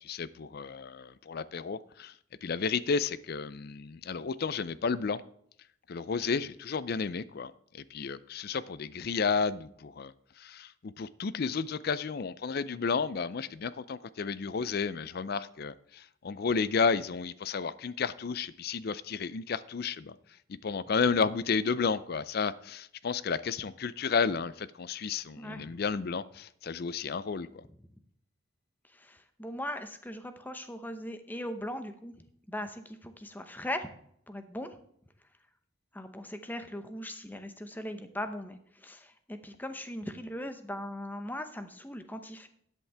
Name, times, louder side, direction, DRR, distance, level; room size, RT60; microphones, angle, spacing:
voice 1, 0.0-2.1 2.4-5.2 5.9-10.1 10.4-20.2 20.5-27.6, left 5 dB, 50° left, 17 dB, 0.4 m, -32 dB
voice 2, 25.4-25.7 29.0-32.1 32.5-33.9 34.3-34.8 35.9-42.5, left 1 dB, 10° left, 9 dB, 0.7 m, -39 dB
13.0 x 8.3 x 3.4 m, 0.70 s
head